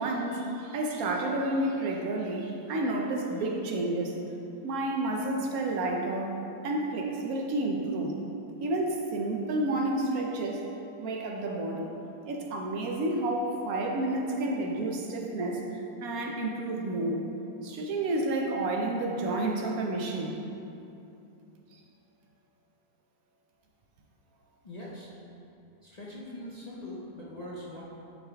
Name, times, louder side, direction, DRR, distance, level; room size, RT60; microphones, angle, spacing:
voice 1, 0.0-4.2 4.6-6.4 6.6-8.2 8.6-10.6 11.0-11.9 12.2-17.2 17.6-20.4, right 2 dB, 65° right, 0 dB, 1.1 m, -30 dB
voice 2, 24.6-25.1 25.8-27.8, left 1 dB, 60° left, -7 dB, 0.4 m, -42 dB
9.6 x 3.9 x 3.4 m, 2.8 s
omnidirectional pair, 1.9 m